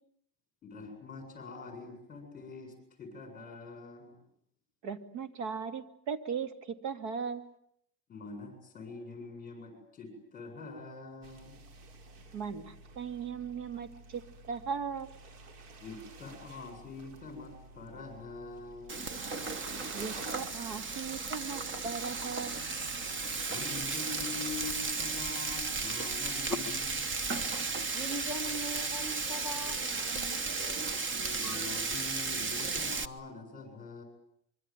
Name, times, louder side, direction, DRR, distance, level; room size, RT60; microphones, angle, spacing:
voice 1, 0.6-4.2 8.1-11.6 15.8-19.2 23.5-26.8 31.3-34.0, left 4 dB, 20° left, 5 dB, 7.6 m, -44 dB
voice 2, 4.8-7.5 12.3-14.2 14.5-15.1 19.9-22.6, right 6 dB, 65° right, 8 dB, 2.9 m, -38 dB
sound 1, 11.2-29.7, right 3 dB, 85° right, 5.5 m, -52 dB
Frying (food), 18.9-33.1, right 4 dB, 25° right, 1.2 m, -34 dB
voice 3, 27.9-31.7, equal, 5° right, 4 dB, 2.9 m, -41 dB
25.5 x 24.0 x 9.3 m, 0.72 s
cardioid pair, 150°, 44 cm